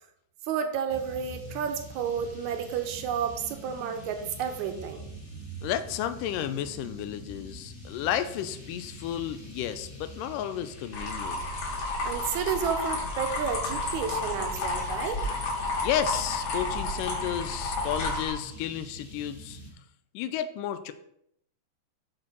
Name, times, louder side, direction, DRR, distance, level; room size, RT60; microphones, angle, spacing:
voice 1, 0.5-5.0 12.0-15.2, right 7 dB, 70° right, 6 dB, 2.0 m, -31 dB
sound 1, 0.9-19.7, right 1 dB, 30° left, 0.9 m, -45 dB
voice 2, 5.6-11.4 15.8-19.6 20.1-20.9, left 10 dB, 80° left, 11 dB, 2.2 m, -32 dB
sound 2, 10.9-18.3, left 2 dB, 65° left, 3.8 m, -31 dB
9.0 x 4.3 x 6.1 m, 0.75 s
omnidirectional pair, 4.0 m